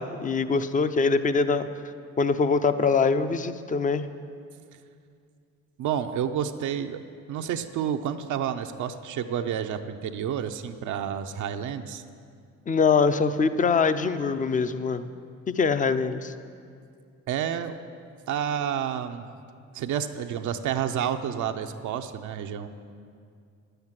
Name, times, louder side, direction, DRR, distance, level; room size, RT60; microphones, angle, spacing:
voice 1, 0.0-1.7 2.2-4.0 12.7-15.1 15.5-16.3, left 5 dB, 25° left, 11 dB, 0.5 m, -23 dB
voice 2, 5.8-7.0 7.3-12.0 17.3-17.7 18.3-19.3 19.7-22.7, right 9 dB, 75° right, 6 dB, 0.6 m, -30 dB
9.9 x 7.9 x 7.4 m, 2.3 s
cardioid pair, 90°, 30 cm